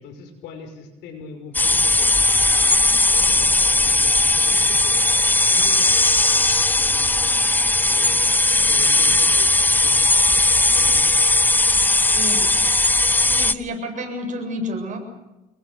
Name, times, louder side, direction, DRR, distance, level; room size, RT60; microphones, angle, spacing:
voice 1, 0.0-8.2 8.7-11.1 12.1-12.6, left 4 dB, 85° left, 6 dB, 5.8 m, -42 dB
sound 1, 1.5-13.5, left 2 dB, 10° left, 0.8 m, -17 dB
voice 2, 13.3-15.0, equal, 50° right, 3 dB, 8.0 m, -29 dB
27.5 x 22.0 x 7.0 m, 1.0 s
cardioid pair, 110°, 17 cm